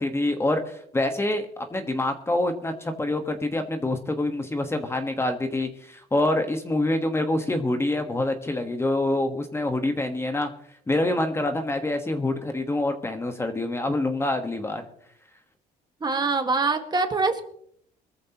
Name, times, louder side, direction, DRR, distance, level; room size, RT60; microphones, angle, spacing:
voice 1, 0.0-10.5 10.9-14.8, left 1 dB, 15° left, 6 dB, 1.4 m, -26 dB
voice 2, 16.0-17.5, right 3 dB, 25° right, 6 dB, 1.8 m, -24 dB
22.0 x 14.0 x 3.0 m, 0.67 s
cardioid pair, 110°, 17 cm